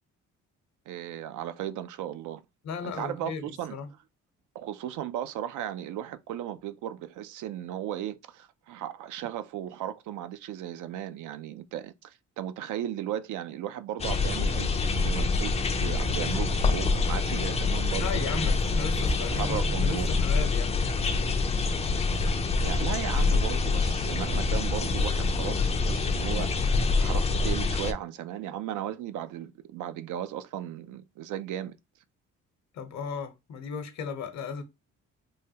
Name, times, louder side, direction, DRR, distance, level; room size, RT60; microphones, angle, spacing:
voice 1, 0.9-2.4 2.8-3.8 4.5-18.6 19.2-20.1 22.2-22.3 22.6-26.7 27.0-31.8, right 11 dB, 80° right, 0.5 m, -36 dB
voice 2, 2.6-3.9 17.9-20.9 32.7-34.6, left 5 dB, 65° left, 0.8 m, -36 dB
sound 1, 14.0-27.9, left 4 dB, 20° left, 0.3 m, -26 dB
3.1 x 2.3 x 2.7 m
cardioid pair, 90°, 30 cm